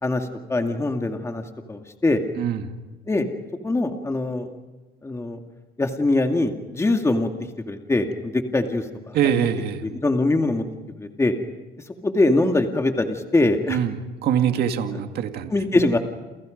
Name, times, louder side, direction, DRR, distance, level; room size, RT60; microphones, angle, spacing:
voice 1, 0.0-1.4 1.7-2.2 3.1-3.3 3.6-4.5 5.0-5.4 5.8-7.3 7.7-9.5 9.8-10.6 11.0-11.3 12.0-13.8 15.5-16.0, left 2 dB, 15° left, 4 dB, 2.2 m, -22 dB
voice 2, 9.1-9.8 13.7-14.0 14.2-15.5, right 9 dB, 70° right, 6 dB, 2.2 m, -23 dB
29.0 x 28.5 x 5.3 m, 1.2 s
cardioid pair, 110°, 17 cm